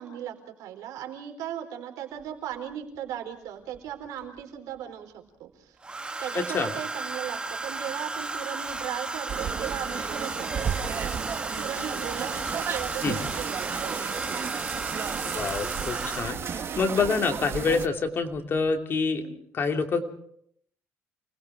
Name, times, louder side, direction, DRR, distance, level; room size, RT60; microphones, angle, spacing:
voice 1, 0.0-5.1 5.4-5.8 6.2-14.5 19.2-19.4, right 10 dB, 85° right, 4 dB, 4.1 m, -37 dB
Domestic sounds home sounds, 2.2-2.3 3.7-4.4 5.8-16.6 17.8-18.1 18.3-18.7, right 3 dB, 15° right, 1.4 m, -34 dB
voice 2, 6.3-6.7 13.0-13.2 15.3-19.3 19.5-20.0, left 4 dB, 40° left, 5 dB, 2.9 m, -27 dB
sound 1, 9.3-17.9, right 7 dB, 45° right, 1.5 m, -33 dB
29.0 x 20.5 x 4.8 m, 0.67 s
cardioid pair, 125°, 6 cm